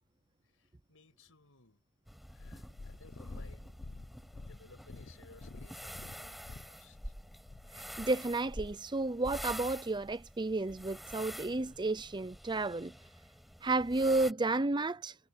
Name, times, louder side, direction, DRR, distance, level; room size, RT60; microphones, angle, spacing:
voice 1, 0.4-1.8 2.2-3.7 4.3-7.1, left 3 dB, 70° left, 6.5 m, -60 dB
sound 1, 2.1-14.3, equal, ahead, 6.2 m, -48 dB
Purr, 2.3-8.6 9.4-9.5, left 3 dB, 45° left, 0.7 m, -49 dB
voice 2, 7.7-12.9 13.6-15.1, right 2 dB, 20° right, 0.6 m, -32 dB
head